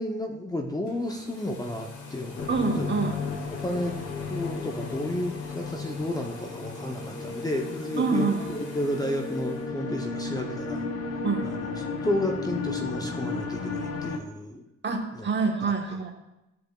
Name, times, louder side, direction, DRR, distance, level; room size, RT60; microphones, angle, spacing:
voice 1, 0.0-2.9 3.6-4.0 4.3-10.8 11.4-14.6 15.1-15.3, left 1 dB, 15° left, 3 dB, 0.6 m, -32 dB
sound 1, 0.8-9.7, left 4 dB, 80° left, 1.4 m, -45 dB
sound 2, 2.4-14.2, left 4 dB, 50° left, 1.0 m, -34 dB
voice 2, 2.5-3.2 8.0-8.5 11.2-11.5 14.8-16.1, right 4 dB, 35° right, 3 dB, 1.2 m, -26 dB
13.0 x 5.0 x 2.3 m, 0.94 s
cardioid pair, 90°, 30 cm